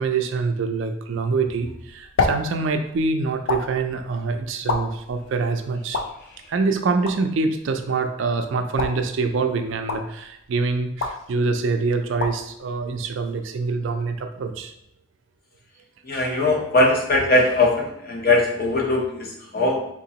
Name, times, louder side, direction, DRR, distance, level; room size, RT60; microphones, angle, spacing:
voice 1, 0.0-6.0 6.5-14.7, right 4 dB, 70° right, 6 dB, 0.4 m, -25 dB
sound 1, 1.5-13.7, left 3 dB, 80° left, 0.4 m, -32 dB
voice 2, 16.0-19.9, left 2 dB, 45° left, -1 dB, 0.7 m, -20 dB
3.6 x 2.9 x 2.8 m, 0.77 s
head